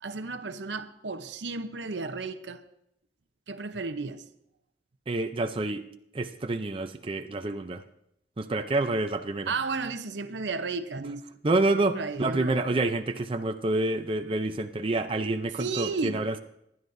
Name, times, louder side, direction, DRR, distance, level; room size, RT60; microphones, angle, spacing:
voice 1, 0.0-2.6 3.5-4.2 9.5-11.3 11.7-12.6 15.6-16.2, right 4 dB, 75° right, 0.8 m, -33 dB
voice 2, 5.1-5.8 6.1-7.8 8.4-9.5 11.0-11.1 11.4-16.4, right 2 dB, 30° right, 0.6 m, -28 dB
25.5 x 11.0 x 2.7 m
head